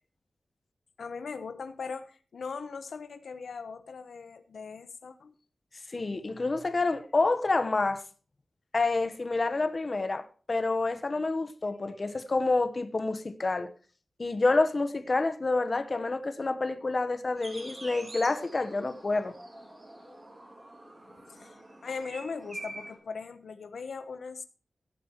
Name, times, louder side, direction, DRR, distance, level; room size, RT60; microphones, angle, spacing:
voice 1, 1.0-5.3 21.0-24.4, left 5 dB, 85° left, 1.0 m, -40 dB
voice 2, 5.9-8.0 8.7-13.7 14.2-19.3, left 3 dB, 35° left, 1.0 m, -28 dB
sound 1, 17.4-23.0, right 1 dB, 25° right, 3.2 m, -46 dB
16.5 x 9.3 x 3.0 m
wide cardioid pair, 140°, 0 cm